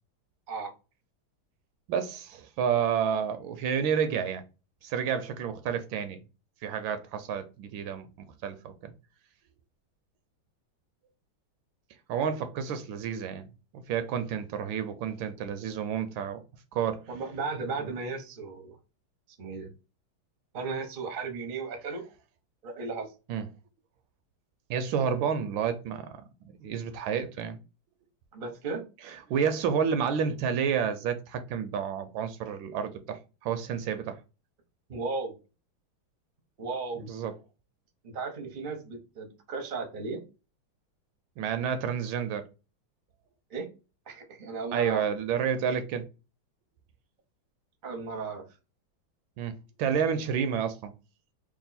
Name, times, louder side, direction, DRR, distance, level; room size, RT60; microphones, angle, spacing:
voice 1, 1.9-4.4 4.8-6.2 6.6-8.9 12.1-13.5 13.7-16.4 16.7-17.0 17.8-17.9 23.3-23.5 24.7-26.1 26.4-27.6 29.0-34.2 37.1-37.3 41.4-42.4 44.7-46.0 49.4-50.9, right 7 dB, 75° right, 1.2 m, -30 dB
voice 2, 17.1-18.8 19.4-19.7 20.5-22.0 22.6-23.1 28.3-28.8 34.9-35.3 36.6-37.1 38.0-40.2 43.5-43.7 44.1-45.1 47.8-48.4, right 4 dB, 45° right, 0.6 m, -35 dB
3.4 x 2.4 x 4.0 m
omnidirectional pair, 2.3 m